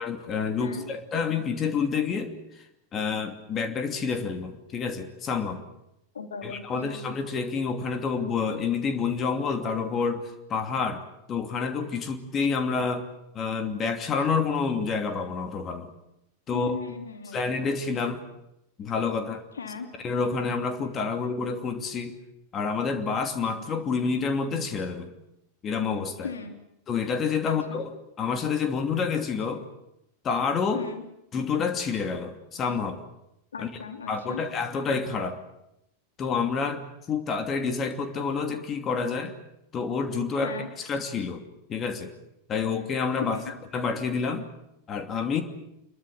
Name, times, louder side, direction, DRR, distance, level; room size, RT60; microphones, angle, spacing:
voice 1, 0.0-2.3 2.9-5.6 6.4-11.0 11.3-13.1 13.3-15.9 16.5-16.8 17.3-18.2 18.8-19.4 20.0-22.2 22.5-25.1 25.6-26.3 26.9-27.9 28.2-29.7 30.2-30.8 31.3-33.0 34.1-35.4 36.2-36.8 37.1-39.3 39.7-40.6 40.9-42.1 42.5-43.4 43.7-44.5 44.9-45.4, left 5 dB, 25° left, 7 dB, 2.7 m, -28 dB
voice 2, 6.1-7.0 16.5-17.7 19.5-19.9 21.1-21.2 26.2-26.5 27.4-27.8 30.7-31.0 33.5-34.4 40.4-40.7 43.2-43.5, left 5 dB, 70° left, 5 dB, 3.3 m, -37 dB
26.5 x 22.5 x 7.9 m, 0.83 s
figure-of-eight pair, 90°, 0 cm